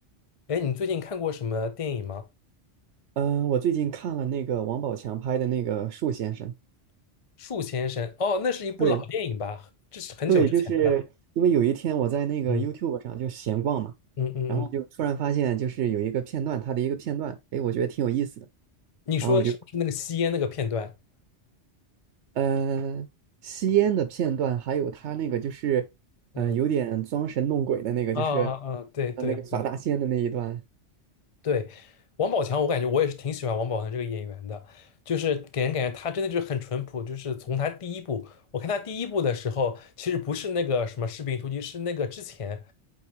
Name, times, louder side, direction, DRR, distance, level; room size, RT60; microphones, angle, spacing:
voice 1, 0.5-2.2 7.4-10.5 10.8-10.9 12.5-12.7 14.2-14.7 19.1-20.9 26.3-26.6 28.1-29.6 31.4-31.9 32.2-42.6, left 6 dB, 40° left, 0.5 m, -29 dB
voice 2, 3.2-6.5 8.8-9.0 10.3-11.0 11.4-13.9 14.5-18.5 19.2-19.5 22.4-23.1 23.4-25.8 26.4-28.5 29.2-30.6, right 9 dB, 80° right, 0.9 m, -26 dB
8.6 x 3.8 x 3.0 m
omnidirectional pair, 1.2 m